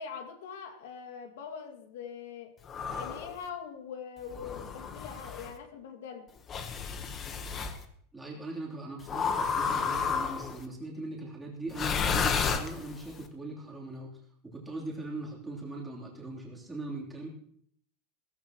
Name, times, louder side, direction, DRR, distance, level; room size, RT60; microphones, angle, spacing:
voice 1, 0.0-2.5 2.9-6.3, left 7 dB, 85° left, 5 dB, 2.2 m, -42 dB
sound 1, 2.7-3.3 4.3-5.5 6.5-7.8 9.1-10.6 11.7-13.1, left 6 dB, 25° left, 1.1 m, -31 dB
voice 2, 8.1-14.2 14.4-17.3, right 2 dB, 10° right, -3 dB, 3.3 m, -40 dB
16.0 x 14.5 x 3.0 m, 0.63 s
supercardioid pair, 160°, 0 cm